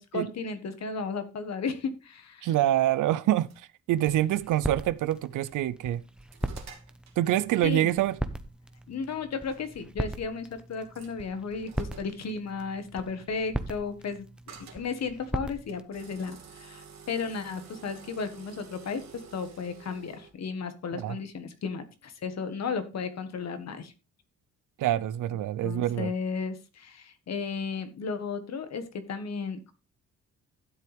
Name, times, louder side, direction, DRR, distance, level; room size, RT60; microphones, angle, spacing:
voice 1, 0.0-2.5 7.6-7.9 8.9-23.9 25.6-29.7, left 5 dB, 60° left, 1.6 m, -34 dB
voice 2, 2.4-6.0 7.2-8.1 20.9-21.2 24.8-26.1, right 13 dB, 80° right, 0.6 m, -26 dB
sound 1, 3.4-3.6 4.2-4.3 5.2-5.5 5.9-7.2 8.8-8.9 9.4-9.6 10.7-11.1 11.7-12.2 14.5-14.9 15.7-20.3, right 6 dB, 60° right, 2.5 m, -49 dB
sound 2, 3.9-15.8, right 1 dB, 5° right, 0.9 m, -39 dB
12.5 x 7.7 x 3.4 m
cardioid pair, 110°, 30 cm